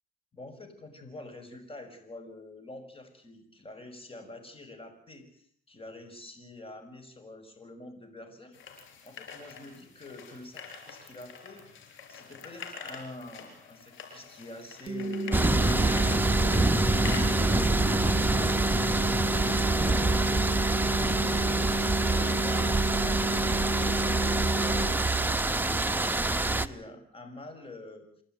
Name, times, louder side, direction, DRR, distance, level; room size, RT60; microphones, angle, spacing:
voice 1, 0.3-8.6 9.0-17.0 18.9-28.1, left 1 dB, 30° left, 8 dB, 6.0 m, -47 dB
sound 1, 8.5-17.4, left 6 dB, 85° left, 5.1 m, -45 dB
sound 2, 14.9-24.9, right 2 dB, 30° right, 3.0 m, -31 dB
sound 3, 15.3-26.7, right 2 dB, 10° right, 1.0 m, -26 dB
28.5 x 12.0 x 9.3 m, 0.63 s
cardioid pair, 90°, 20 cm